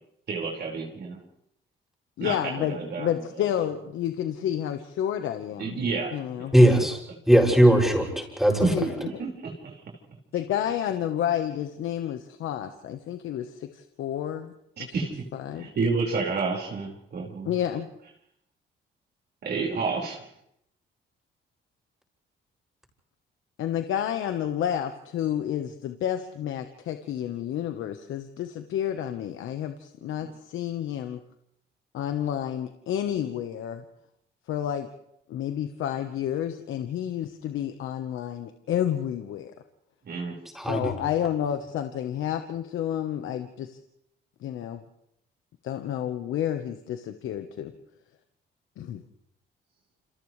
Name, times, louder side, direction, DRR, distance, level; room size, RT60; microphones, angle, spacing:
voice 1, 0.3-1.2 2.2-3.4 5.6-6.5 8.6-9.8 14.8-15.3 15.5-17.5 19.4-20.3 30.0-30.3 40.0-40.4, right 4 dB, 55° right, -1 dB, 5.1 m, -30 dB
voice 2, 2.2-5.8 6.1-6.5 8.6-8.8 10.3-14.5 15.3-15.7 17.4-17.9 23.6-31.2 31.9-33.8 34.5-34.9 35.3-39.5 40.7-43.8 44.4-44.8 45.6-47.7 48.8-49.0, left 10 dB, 80° left, 7 dB, 1.2 m, -30 dB
voice 3, 6.5-7.0 7.3-8.6 40.5-41.0, right 1 dB, ahead, -1 dB, 6.7 m, -19 dB
29.5 x 27.0 x 3.3 m, 0.76 s
cardioid pair, 90°, 20 cm